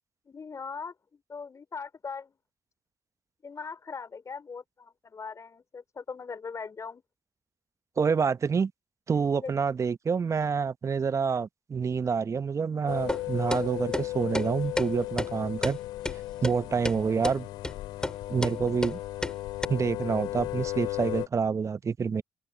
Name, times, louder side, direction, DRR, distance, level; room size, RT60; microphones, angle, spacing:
voice 1, 0.3-2.3 3.4-7.0 9.4-9.5, left 5 dB, 45° left, 4.3 m, -40 dB
voice 2, 8.0-8.7 9.1-15.8 16.4-17.5 18.3-19.0 19.7-22.2, right 6 dB, 45° right, 0.9 m, -27 dB
sound 1, 12.9-21.3, left 16 dB, 80° left, 2.9 m, -35 dB
sound 2, 13.1-13.2 13.5-13.6 13.9-14.1 14.3-14.5 14.8-14.9 15.2-15.3 15.6-15.8 16.0-16.2 16.4-16.5 16.8-17.0 17.2-17.4 17.6-17.7 18.0-18.2 18.4-18.5 18.8-18.9 19.2-19.3 19.6-19.7, left 1 dB, 10° left, 3.1 m, -30 dB
hypercardioid pair, 45°, 7 cm